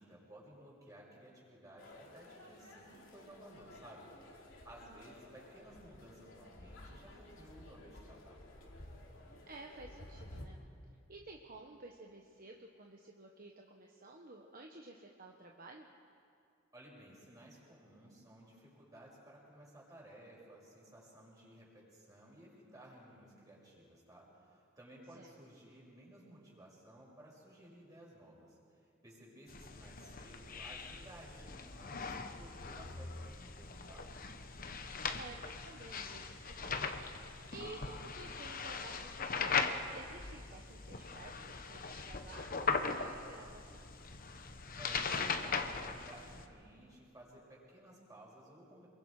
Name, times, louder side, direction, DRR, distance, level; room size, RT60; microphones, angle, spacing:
voice 1, 0.0-8.4 16.7-34.1 44.8-48.9, right 1 dB, 20° right, -4 dB, 6.1 m, -57 dB
sound 1, 1.8-10.5, left 1 dB, 70° left, 2.9 m, -54 dB
voice 2, 9.5-10.6 11.1-15.9 25.1-25.3 35.1-36.9 37.5-43.9, right 2 dB, 45° right, 1 dB, 1.2 m, -53 dB
sound 2, 29.5-46.5, left 5 dB, 45° left, 1.1 m, -40 dB
27.0 x 23.0 x 4.9 m, 2.4 s
head